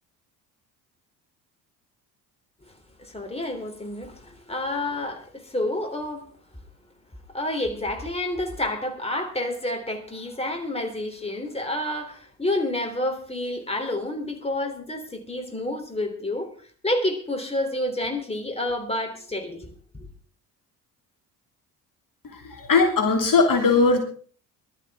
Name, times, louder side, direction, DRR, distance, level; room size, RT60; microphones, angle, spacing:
voice 1, 3.0-6.3 7.3-19.7 20.0-20.1, left 1 dB, 10° left, 4 dB, 3.5 m, -29 dB
voice 2, 22.2-24.0, left 4 dB, 40° left, 4 dB, 3.1 m, -20 dB
21.0 x 12.5 x 3.7 m, 0.43 s
figure-of-eight pair, 55°, 50 cm